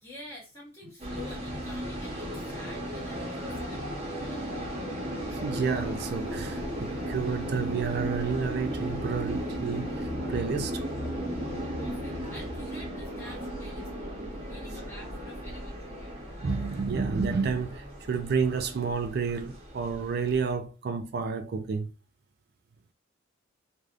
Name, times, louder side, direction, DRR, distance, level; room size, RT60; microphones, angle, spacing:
voice 1, 0.0-4.9 11.8-13.9 14.5-16.2, left 2 dB, 15° left, 1.4 m, -49 dB
sound 1, 1.0-20.5, equal, 30° right, 1.0 m, -35 dB
voice 2, 5.4-10.8 16.4-21.9, right 5 dB, 50° right, 0.3 m, -30 dB
3.3 x 2.5 x 2.5 m
head